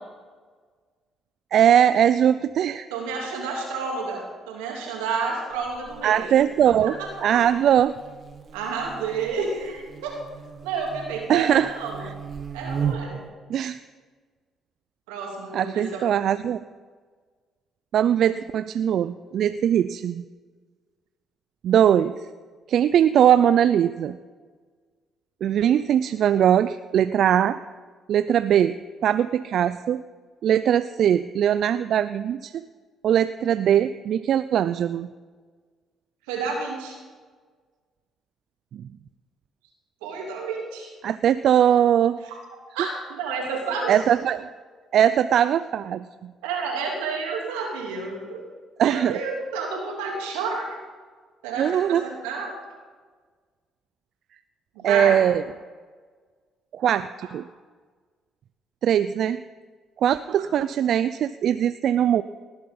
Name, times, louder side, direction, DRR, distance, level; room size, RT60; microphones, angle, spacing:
voice 1, 1.5-2.9 6.0-6.9 7.2-8.0 11.3-11.7 13.5-13.8 15.5-16.6 17.9-20.2 21.6-22.1 22.7-24.2 25.4-27.6 28.1-28.7 29.0-30.0 30.4-32.6 33.0-35.1 38.7-38.8 41.0-42.2 43.9-44.5 44.9-46.3 48.8-49.2 51.6-52.0 54.8-55.4 56.7-57.4 58.8-59.4 60.0-62.2, right 10 dB, 65° right, 13 dB, 0.4 m, -20 dB
voice 2, 2.9-6.3 6.8-7.6 8.5-10.2 10.6-12.0 12.5-13.2 15.1-16.1 36.3-37.0 40.0-40.9 42.2-42.4 42.7-44.0 46.4-48.4 48.8-50.6 51.4-52.5 54.7-55.3 57.2-57.3, right 4 dB, 90° right, -1 dB, 3.0 m, -30 dB
Buzz, 5.5-13.3, right 7 dB, 45° right, 1.4 m, -36 dB
19.0 x 7.8 x 5.5 m, 1.5 s
supercardioid pair, 60°, 0 cm